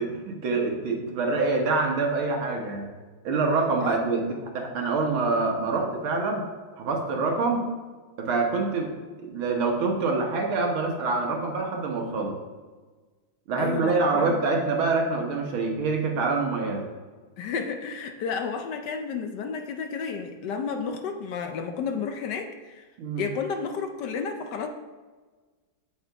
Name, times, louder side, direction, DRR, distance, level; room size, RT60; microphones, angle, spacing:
voice 1, 0.0-2.9 3.2-4.2 4.5-6.5 6.8-7.7 8.2-8.9 9.2-12.4 13.5-16.9 23.0-23.2, right 3 dB, 85° right, 2 dB, 2.1 m, -26 dB
voice 2, 13.6-14.4 17.4-22.8 23.2-24.7, left 5 dB, 70° left, 6 dB, 1.1 m, -32 dB
8.0 x 7.8 x 3.5 m, 1.3 s
omnidirectional pair, 2.2 m